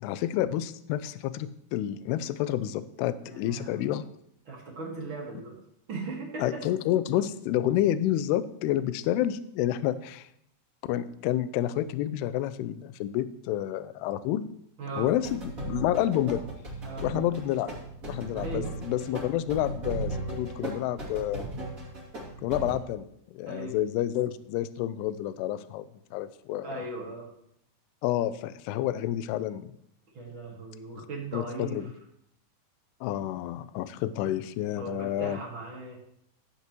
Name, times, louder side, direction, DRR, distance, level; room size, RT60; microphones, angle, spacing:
voice 1, 0.0-4.0 6.4-10.3 10.9-14.5 15.0-16.4 17.0-17.7 18.1-21.5 22.4-23.1 23.3-26.8 28.0-29.7 31.0-31.1 31.3-31.8 33.0-35.4, left 12 dB, 85° left, 13 dB, 2.4 m, -29 dB
voice 2, 3.2-4.0 4.5-5.6 5.9-6.6 14.8-15.1 16.8-17.1 18.3-18.7 23.5-23.8 26.6-27.3 30.1-31.9 34.7-36.0, right 3 dB, 45° right, -2 dB, 1.7 m, -38 dB
sound 1, 14.9-22.7, right 2 dB, 25° right, 1.9 m, -37 dB
13.5 x 8.2 x 3.0 m, 0.73 s
omnidirectional pair, 5.0 m